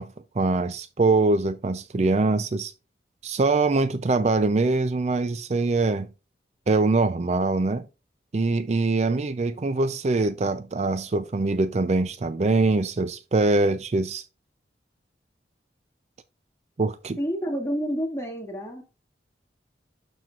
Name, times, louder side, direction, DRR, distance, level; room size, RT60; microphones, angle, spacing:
voice 1, 0.0-2.7 3.2-6.1 6.7-7.9 8.3-14.3 16.8-17.2, right 3 dB, 35° right, 0.4 m, -23 dB
voice 2, 17.2-18.8, equal, 15° left, 2.0 m, -29 dB
12.0 x 4.5 x 2.4 m
head